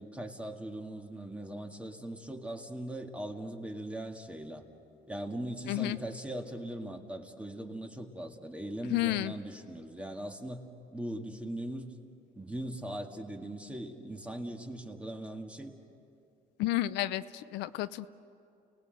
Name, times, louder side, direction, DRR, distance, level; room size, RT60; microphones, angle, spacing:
voice 1, 0.0-4.6 5.1-10.6 10.9-11.9 12.4-15.7, right 1 dB, 5° right, 3 dB, 1.9 m, -40 dB
voice 2, 5.7-6.0 8.9-9.3 16.6-18.1, left 15 dB, 85° left, 13 dB, 0.6 m, -31 dB
30.0 x 19.0 x 7.9 m, 2.6 s
cardioid pair, 110°, 17 cm